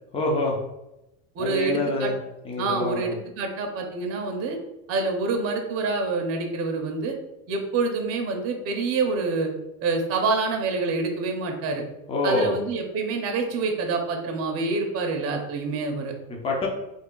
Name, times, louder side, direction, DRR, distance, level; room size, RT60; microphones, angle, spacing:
voice 1, 0.1-0.6 1.4-2.1 2.4-3.1 12.1-12.6 16.3-16.7, left 1 dB, 10° left, -1 dB, 0.6 m, -26 dB
voice 2, 1.3-2.1 2.6-4.6 4.9-7.1 7.5-9.5 9.8-11.8 12.2-16.1, right 3 dB, 30° right, 3 dB, 0.7 m, -27 dB
3.4 x 2.3 x 3.8 m, 0.91 s
supercardioid pair, 120°, 47 cm